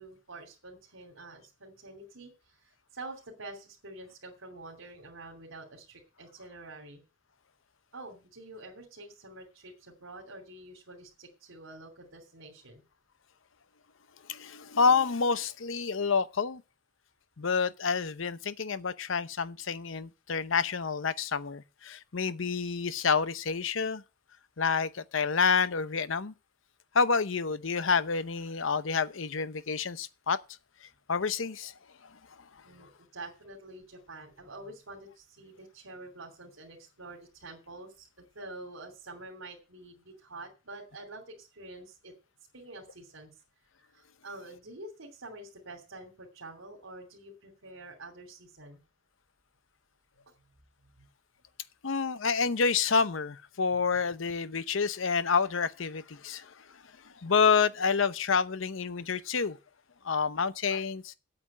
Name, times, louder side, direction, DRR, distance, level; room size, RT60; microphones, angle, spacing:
voice 1, 0.0-7.0 7.9-12.8 32.6-42.1 42.5-43.3 43.9-48.8 51.0-51.1, right 2 dB, 80° right, 2.9 m, -47 dB
voice 2, 14.3-16.6 17.4-24.0 24.6-26.3 26.9-30.4 31.1-31.7 51.8-56.5 57.2-59.6 60.0-61.1, left 5 dB, 70° left, 0.8 m, -28 dB
8.7 x 7.7 x 8.5 m
head